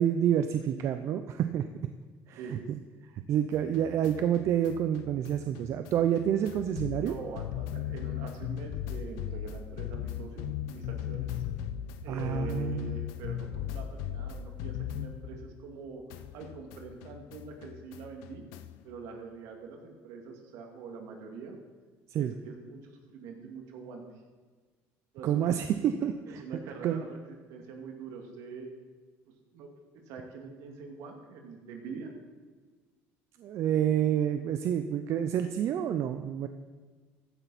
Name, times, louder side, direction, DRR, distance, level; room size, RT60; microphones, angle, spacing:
voice 1, 0.0-1.7 2.3-2.6 3.1-7.1 12.1-12.9 22.1-22.3 25.2-26.4 26.8-27.0 33.4-36.5, right 10 dB, 55° right, 9 dB, 0.6 m, -28 dB
sound 1, 3.5-15.8 16.1-18.9, left 10 dB, 90° left, 0.6 m, -38 dB
voice 2, 7.0-11.4 12.0-18.4 18.8-21.6 22.2-24.0 25.1-25.5 26.0-26.1 26.4-27.2 27.5-28.7 29.5-32.1, right 5 dB, 80° right, 2 dB, 2.3 m, -44 dB
15.0 x 10.5 x 4.2 m, 1.4 s
cardioid pair, 115°, 6 cm